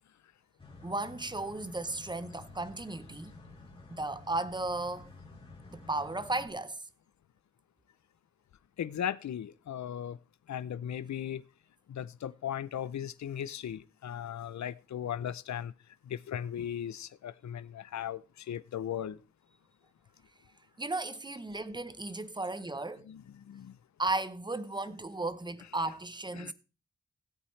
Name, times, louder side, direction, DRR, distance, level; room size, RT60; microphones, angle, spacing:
sound 1, 0.6-6.5, left 3 dB, 20° left, 3.1 m, -51 dB
voice 1, 0.8-3.3 3.9-5.1 5.7-6.8 20.8-23.1 24.0-26.5, right 2 dB, 15° right, 0.8 m, -35 dB
voice 2, 8.8-10.2 10.5-11.4 11.9-15.7 16.1-18.2 18.5-19.2 23.1-23.2 23.5-23.7 25.6-25.9 26.3-26.5, left 9 dB, 70° left, 0.6 m, -37 dB
17.0 x 8.5 x 3.2 m
wide cardioid pair, 115°, 30 cm